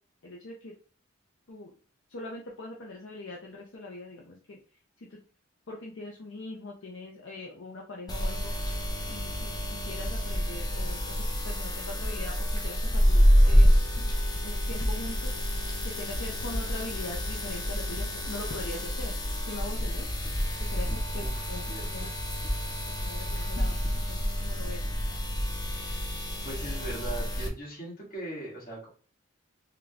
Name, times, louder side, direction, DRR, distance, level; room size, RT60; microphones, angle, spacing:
voice 1, 0.2-0.7 1.5-1.7 2.1-4.6 5.0-5.2 5.7-8.6 9.1-13.7 14.4-15.4 15.8-20.1 20.7-21.6 21.9-22.1 22.9-23.8 24.1-24.9, left 2 dB, 65° left, -1 dB, 0.6 m, -42 dB
sound 1, 8.1-27.5, equal, 20° left, 0.6 m, -27 dB
voice 2, 21.1-22.1 26.4-28.9, right 1 dB, 45° left, -4 dB, 1.8 m, -40 dB
3.7 x 2.2 x 3.4 m, 0.38 s
head